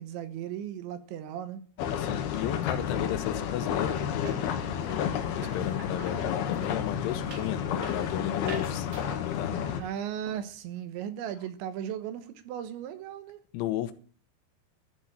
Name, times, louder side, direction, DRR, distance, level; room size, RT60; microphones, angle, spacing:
voice 1, 0.0-1.6 9.5-13.4, right 10 dB, 80° right, 3.4 m, -37 dB
sound 1, 1.8-9.8, left 8 dB, 65° left, 2.9 m, -31 dB
voice 2, 2.0-4.4 4.8-8.9 9.4-9.9 13.5-13.9, left 12 dB, 85° left, 3.5 m, -34 dB
sound 2, 3.3-9.9 10.1-10.6, right 5 dB, 60° right, 4.0 m, -47 dB
13.0 x 7.2 x 9.6 m
omnidirectional pair, 5.3 m